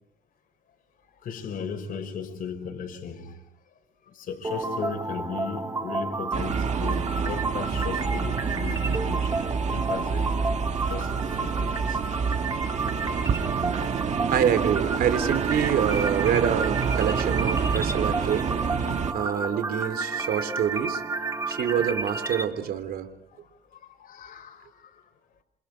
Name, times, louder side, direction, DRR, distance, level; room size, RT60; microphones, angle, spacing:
voice 1, 1.2-3.4 4.1-9.4 9.7-10.4 10.9-12.0 13.0-13.6 20.7-20.8 24.0-25.0, left 6 dB, 55° left, 5.7 m, -36 dB
sound 1, 4.4-22.4, right 3 dB, 20° right, 2.7 m, -31 dB
sound 2, 6.3-19.1, right 6 dB, 45° right, 2.0 m, -28 dB
voice 2, 14.3-18.5 19.1-21.0 21.5-23.1, right 9 dB, 65° right, 3.5 m, -26 dB
29.0 x 27.0 x 5.1 m
cardioid pair, 110°, 17 cm